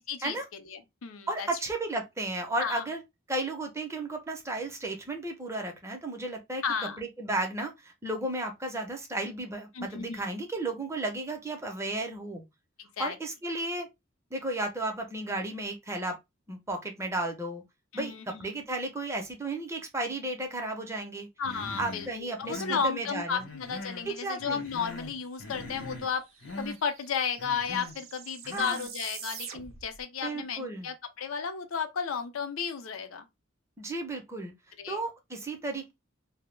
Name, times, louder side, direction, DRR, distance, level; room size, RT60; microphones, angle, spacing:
voice 1, 0.7-1.5 2.6-2.8 6.6-7.0 9.7-10.2 12.8-13.2 17.9-18.6 21.4-26.2 26.6-33.3 34.8-35.0, left 6 dB, 85° left, 0.5 m, -33 dB
voice 2, 1.3-3.0 3.3-6.6 7.0-12.4 13.0-13.9 14.3-16.2 16.5-17.6 17.9-21.3 21.8-23.4 24.1-24.6 28.4-28.8 30.2-30.9 33.8-34.5 34.9-35.9, right 2 dB, 15° right, 0.5 m, -34 dB
Human voice, 21.4-22.1 22.4-22.9 23.4-24.1 24.4-25.1 25.4-26.1 26.4-26.8 27.4-28.0 28.4-28.9, left 2 dB, 70° left, 0.9 m, -42 dB
sound 1, 25.5-25.6 25.8-30.0, right 8 dB, 80° right, 0.5 m, -46 dB
2.2 x 2.0 x 3.0 m
head